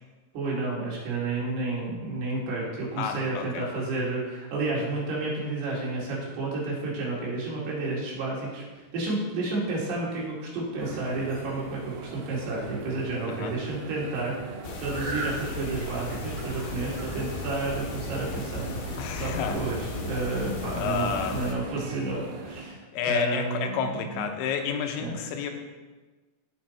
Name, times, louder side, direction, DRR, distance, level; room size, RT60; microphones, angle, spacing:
voice 1, 0.3-8.6 8.9-24.2 25.0-25.1, right 3 dB, 65° right, -5 dB, 4.4 m, -31 dB
voice 2, 3.0-3.7 13.3-13.6 19.0-19.6 20.7-21.4 22.9-25.5, left 7 dB, 85° left, 4 dB, 3.3 m, -30 dB
sound 1, 10.8-22.6, right 3 dB, 90° right, 3.7 m, -39 dB
sound 2, 14.6-21.5, left 4 dB, 70° left, 2.7 m, -36 dB
15.5 x 5.7 x 4.3 m, 1.3 s
omnidirectional pair, 5.1 m